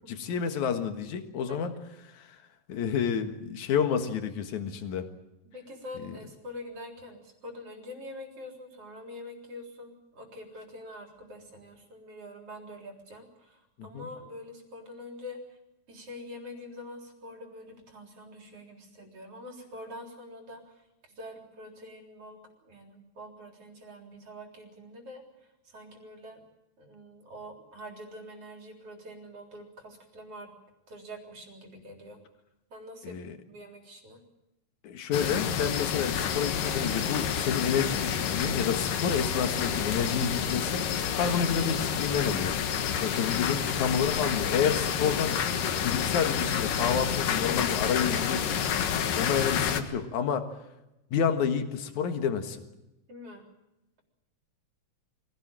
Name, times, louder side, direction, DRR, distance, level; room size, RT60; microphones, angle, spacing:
voice 1, 0.1-1.8 2.1-2.4 2.7-5.1 6.0-6.1 13.8-14.1 33.0-33.3 34.8-40.8 41.1-42.5 43.0-45.4 45.8-48.6 49.2-50.5 51.1-52.6, left 7 dB, 65° left, 7 dB, 2.9 m, -29 dB
voice 2, 5.5-15.6 15.9-26.4 26.8-30.5 30.9-32.2 32.7-33.2 33.4-34.2 53.1-53.5, left 1 dB, 45° right, 2 dB, 4.7 m, -45 dB
sound 1, 35.1-49.8, left 8 dB, 90° left, 3.1 m, -29 dB
24.5 x 17.5 x 9.0 m, 0.93 s
omnidirectional pair, 3.7 m